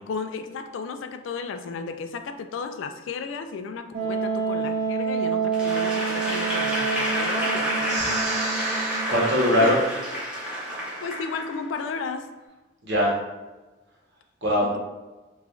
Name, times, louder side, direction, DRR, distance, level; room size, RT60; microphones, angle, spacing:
voice 1, 0.0-7.9 9.6-9.7 11.0-12.2 14.6-14.8, left 5 dB, 70° left, 8 dB, 0.3 m, -34 dB
Wind instrument woodwind instrument, 3.9-9.5, right 5 dB, 45° right, 0.4 m, -28 dB
Applause / Crowd, 5.5-11.9, right 1 dB, 5° right, 0.8 m, -29 dB
voice 2, 7.9-9.8 12.8-13.1 14.4-14.8, equal, 60° right, -3 dB, 0.9 m, -23 dB
3.1 x 2.4 x 3.6 m, 1.2 s
head